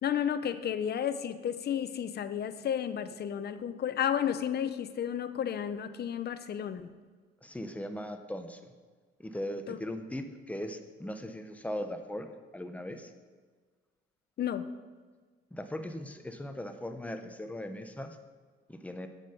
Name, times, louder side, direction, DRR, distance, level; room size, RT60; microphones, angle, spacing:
voice 1, 0.0-6.9 9.7-9.8 14.4-14.7, left 9 dB, 55° left, 11 dB, 0.7 m, -32 dB
voice 2, 7.4-8.6 9.2-12.3 12.5-13.1 15.5-18.2 18.7-19.1, left 1 dB, 5° left, 7 dB, 1.0 m, -39 dB
9.2 x 7.7 x 5.2 m, 1.5 s
cardioid pair, 90°, 20 cm